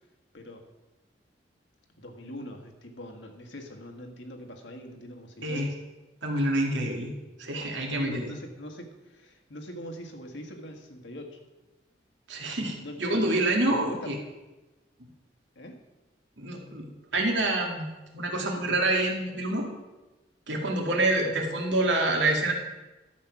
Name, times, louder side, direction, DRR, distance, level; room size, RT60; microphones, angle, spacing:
voice 1, 2.0-5.7 7.8-11.4 12.8-13.2 13.6-14.1 15.5-15.8, equal, 75° left, 3 dB, 1.7 m, -42 dB
voice 2, 5.4-5.7 6.2-7.1 7.4-8.3 12.3-14.2 16.4-17.9 18.1-19.7 20.5-22.5, right 2 dB, 80° right, 1 dB, 2.3 m, -27 dB
12.0 x 7.6 x 6.0 m, 1.1 s
head